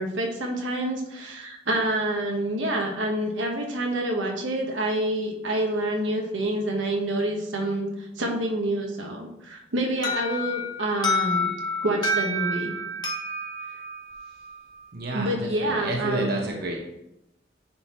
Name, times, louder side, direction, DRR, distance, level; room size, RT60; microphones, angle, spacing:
voice 1, 0.0-11.5 11.8-12.7 15.1-16.4, right 1 dB, 85° right, 2 dB, 1.2 m, -27 dB
Alarm, 10.0-14.8, left 1 dB, 25° left, 1.0 m, -29 dB
voice 2, 14.9-16.8, right 1 dB, 55° right, 0 dB, 0.9 m, -30 dB
9.7 x 3.9 x 3.0 m, 0.86 s
head